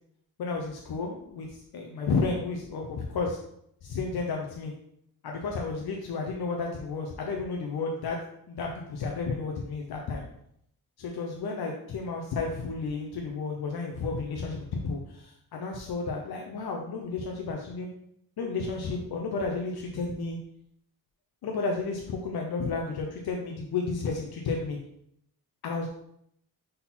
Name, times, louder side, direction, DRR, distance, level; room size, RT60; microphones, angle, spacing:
voice 1, 0.4-3.4 3.8-4.7 5.2-8.2 8.5-10.2 11.0-17.9 18.4-20.4 21.4-24.8 25.6-25.9, left 4 dB, 75° left, 1 dB, 0.8 m, -32 dB
5.7 x 3.9 x 4.3 m, 0.74 s
cardioid pair, 70°, 38 cm